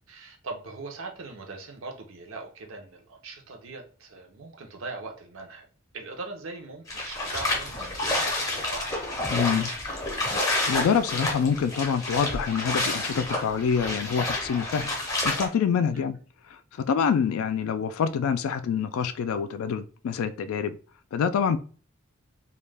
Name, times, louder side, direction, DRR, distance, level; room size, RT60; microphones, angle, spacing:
voice 1, 0.1-5.7 5.9-8.9 15.9-16.0, right 3 dB, 70° right, 0.6 m, -40 dB
sound 1, 6.9-15.5, left 2 dB, 15° left, 0.5 m, -29 dB
voice 2, 9.3-9.7 10.5-14.9 15.2-16.2 16.8-20.8 21.1-21.6, left 7 dB, 80° left, 0.3 m, -26 dB
2.3 x 2.1 x 3.2 m
head